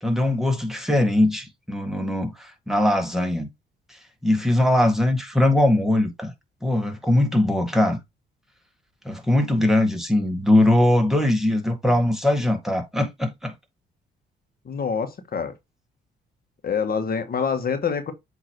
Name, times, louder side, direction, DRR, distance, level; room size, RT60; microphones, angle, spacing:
voice 1, 0.0-3.5 4.2-6.3 6.6-8.0 9.1-13.5, left 1 dB, ahead, 1.8 m, -21 dB
voice 2, 14.6-15.5 16.6-18.1, left 6 dB, 50° left, 1.5 m, -26 dB
7.9 x 3.1 x 4.5 m
cardioid pair, 90°, 20 cm